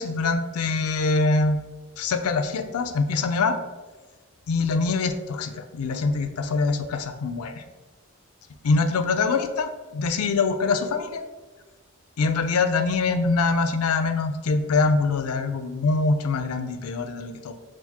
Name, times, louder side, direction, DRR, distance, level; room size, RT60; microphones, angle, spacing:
voice 1, 0.0-1.6 2.0-3.5 4.5-7.5 8.6-11.2 12.2-17.5, left 3 dB, 85° left, 8 dB, 0.4 m, -24 dB
5.7 x 2.5 x 2.9 m, 1.3 s
head